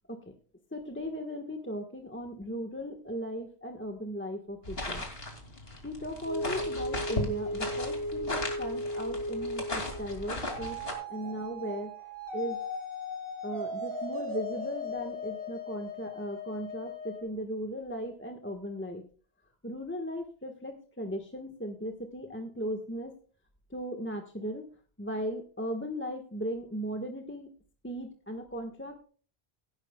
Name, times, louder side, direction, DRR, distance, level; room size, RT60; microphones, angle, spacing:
voice 1, 0.7-5.0 5.8-10.8 11.1-11.9 12.3-12.6 13.4-19.0 19.6-23.1 23.7-24.6 25.0-27.5 27.8-29.0, equal, 10° left, 3 dB, 1.3 m, -37 dB
sound 1, 4.6-10.9, left 2 dB, 70° left, 2.9 m, -37 dB
sound 2, 6.3-17.2, left 1 dB, 30° right, 4.5 m, -36 dB
16.5 x 12.0 x 2.3 m, 0.40 s
omnidirectional pair, 1.0 m